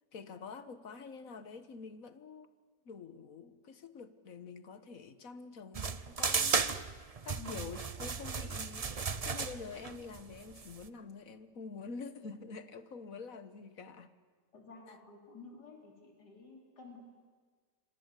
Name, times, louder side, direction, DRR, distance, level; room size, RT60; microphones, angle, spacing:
voice 1, 0.1-2.5 2.8-6.6 7.2-14.1, left 5 dB, 55° left, 1.7 m, -47 dB
sound 1, 5.7-10.9, right 5 dB, 35° right, 0.6 m, -35 dB
voice 2, 14.5-17.0, left 4 dB, 75° left, 4.3 m, -52 dB
28.0 x 25.5 x 8.3 m
omnidirectional pair, 1.8 m